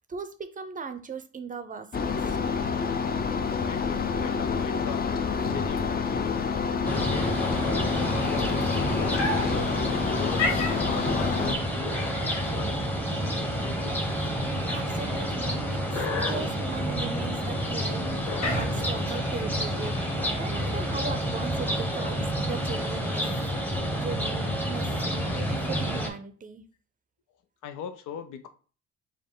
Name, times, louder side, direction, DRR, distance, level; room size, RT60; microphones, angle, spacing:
voice 1, 0.0-2.4 14.7-20.0 20.3-23.3 23.6-26.6, right 5 dB, 25° right, 0.5 m, -38 dB
sound 1, 1.9-11.6, left 5 dB, 30° left, 0.5 m, -28 dB
voice 2, 3.4-5.1 5.5-6.4 6.9-9.7 10.1-10.5 10.9-12.2 12.5-12.8 13.4-14.1 27.6-28.5, left 8 dB, 85° left, 0.6 m, -40 dB
sound 2, 5.3-21.2, left 3 dB, 65° left, 1.1 m, -36 dB
sound 3, 6.8-26.1, equal, 5° left, 0.8 m, -29 dB
5.1 x 2.1 x 3.8 m
cardioid pair, 90°, 30 cm